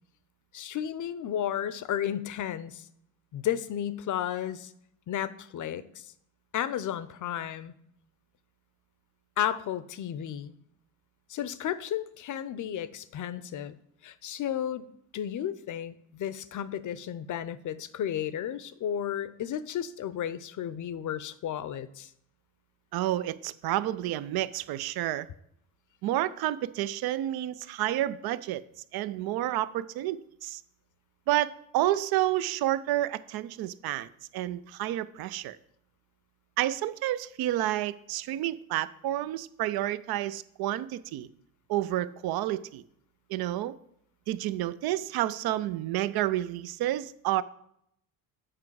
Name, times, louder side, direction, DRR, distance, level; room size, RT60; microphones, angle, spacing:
voice 1, 0.5-2.8 3.3-4.7 5.1-6.0 6.5-7.7 9.4-10.5 11.3-13.8 14.0-14.9 15.1-22.1, left 10 dB, 45° left, 15 dB, 0.6 m, -33 dB
voice 2, 22.9-25.3 26.0-28.6 28.9-30.6 31.3-35.6 36.6-41.3 41.7-42.8 43.3-43.8 44.3-47.4, right 14 dB, 60° right, 16 dB, 0.6 m, -30 dB
7.5 x 4.8 x 4.7 m, 0.73 s
hypercardioid pair, 55°, 42 cm